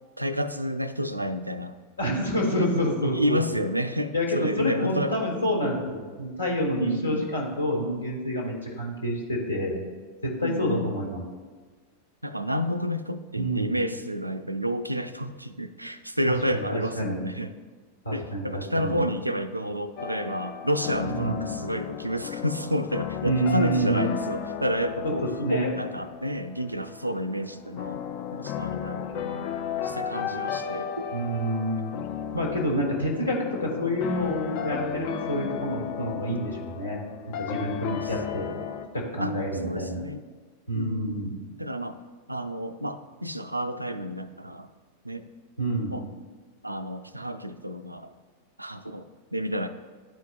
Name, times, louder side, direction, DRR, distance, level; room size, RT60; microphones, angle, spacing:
voice 1, 0.2-1.7 2.6-2.7 3.0-5.2 6.8-7.3 10.4-10.9 12.2-17.5 18.1-25.2 25.5-28.0 28.3-29.5 29.8-31.1 35.3-35.5 39.1-39.3 39.6-40.2 40.7-42.0 42.3-44.7 45.0-45.3 45.9-46.0 46.6-48.1 48.6-49.7, equal, 85° right, 11 dB, 0.3 m, -30 dB
voice 2, 2.0-3.6 4.1-9.7 10.2-11.2 13.3-13.8 16.3-17.2 18.0-19.0 21.0-21.4 23.2-24.1 25.4-25.7 31.1-31.9 32.3-37.0 37.3-38.5 38.9-40.0 40.7-41.3 45.6-46.0, equal, 75° left, -1 dB, 1.5 m, -28 dB
sound 1, 20.0-38.9, left 8 dB, 45° left, 0.4 m, -35 dB
11.0 x 4.6 x 2.5 m, 1.4 s
figure-of-eight pair, 90°, 0 cm